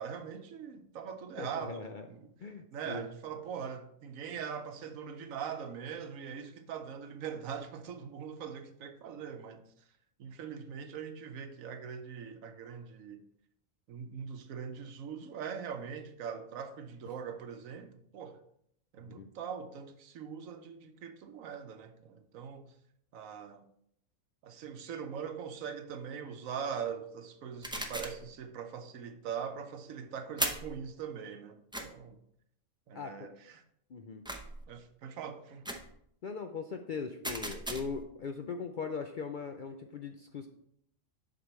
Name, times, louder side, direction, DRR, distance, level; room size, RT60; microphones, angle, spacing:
voice 1, 0.0-2.3 2.7-9.6 10.2-13.2 13.9-18.4 18.9-22.7 23.1-23.7 24.4-32.2 32.9-33.6 34.7-35.7, right 7 dB, 85° right, 1.1 m, -42 dB
voice 2, 1.4-2.1 2.4-3.1 19.1-19.3 32.9-33.3 33.9-34.3 36.2-40.5, left 5 dB, 65° left, 0.5 m, -40 dB
sound 1, 27.6-28.3 30.4-30.8 31.7-31.9 34.3-34.6 35.6-35.9 37.2-38.0, right 1 dB, 5° right, 0.4 m, -37 dB
8.0 x 6.0 x 3.1 m
omnidirectional pair, 1.4 m